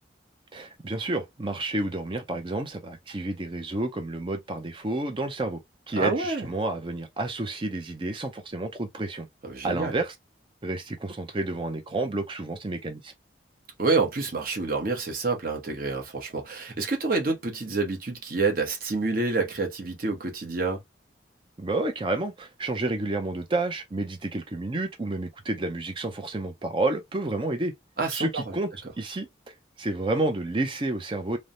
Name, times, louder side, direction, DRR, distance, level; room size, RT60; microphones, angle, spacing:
voice 1, 0.5-5.6 5.9-9.3 9.6-10.1 10.6-13.1 21.6-27.7 28.1-28.7 29.0-29.3 29.8-31.4, right 2 dB, 25° right, 0.5 m, -30 dB
voice 2, 6.0-6.5 9.4-9.9 13.8-20.8 28.0-28.5, right 3 dB, 50° right, 0.9 m, -28 dB
3.2 x 2.1 x 2.6 m
head